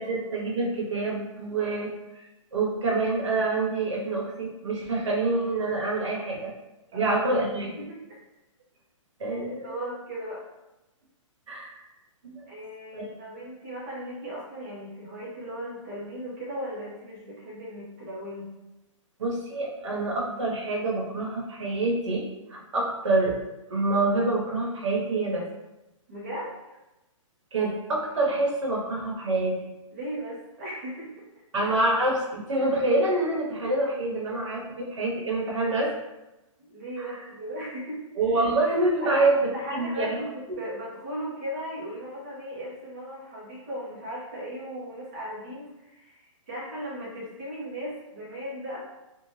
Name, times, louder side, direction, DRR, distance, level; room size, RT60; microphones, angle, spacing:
voice 1, 0.0-2.2 2.5-6.5 6.9-7.7 9.2-9.8 11.5-11.8 12.2-12.4 12.9-13.1 19.2-22.2 22.5-23.3 23.7-25.4 27.5-29.5 31.5-35.9 37.0-37.2 38.2-39.3 39.7-40.2 40.5-40.6, right 2 dB, 60° right, -2 dB, 0.9 m, -26 dB
voice 2, 7.8-8.2 9.2-10.4 12.5-18.5 26.1-26.8 29.9-31.1 36.6-38.0 38.3-38.5 39.0-39.2 39.5-48.8, equal, 20° right, -8 dB, 0.5 m, -37 dB
2.6 x 2.1 x 3.1 m, 0.97 s
hypercardioid pair, 180°, 17 cm